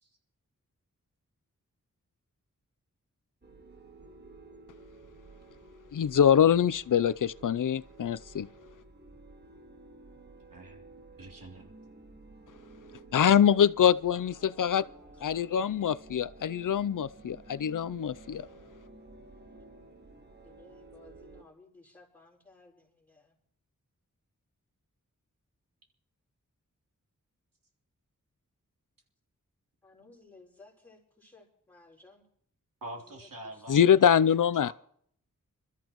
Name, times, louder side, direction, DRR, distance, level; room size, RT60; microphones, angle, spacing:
sound 1, 3.4-21.4, right 2 dB, 30° right, 1.5 m, -53 dB
voice 1, 5.9-8.5 13.1-14.8 15.2-18.5 33.7-34.7, left 8 dB, 70° left, 0.5 m, -24 dB
voice 2, 10.5-10.8 11.2-11.7 32.8-33.9 34.6-34.7, right 1 dB, 85° right, 3.4 m, -45 dB
voice 3, 14.4-15.8 19.5-19.7 20.4-23.4 29.8-32.3 32.9-34.0, left 3 dB, 5° left, 4.8 m, -58 dB
27.5 x 13.5 x 3.0 m
wide cardioid pair, 85°, 32 cm